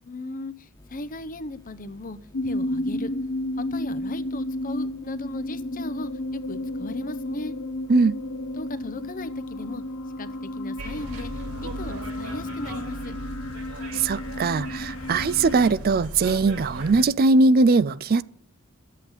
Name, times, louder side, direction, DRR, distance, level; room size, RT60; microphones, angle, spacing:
voice 1, 0.0-2.2 2.4-3.1 3.6-7.5 8.6-9.8 10.2-13.1, left 2 dB, 40° left, 0.7 m, -37 dB
sound 1, 0.7-11.6, left 2 dB, 20° left, 1.4 m, -53 dB
sound 2, 2.3-15.7, left 1 dB, 85° left, 1.2 m, -32 dB
sound 3, 10.8-17.0, right 1 dB, 75° right, 5.4 m, -38 dB
voice 2, 13.9-18.2, right 3 dB, 45° right, 0.4 m, -20 dB
12.0 x 8.3 x 8.0 m
head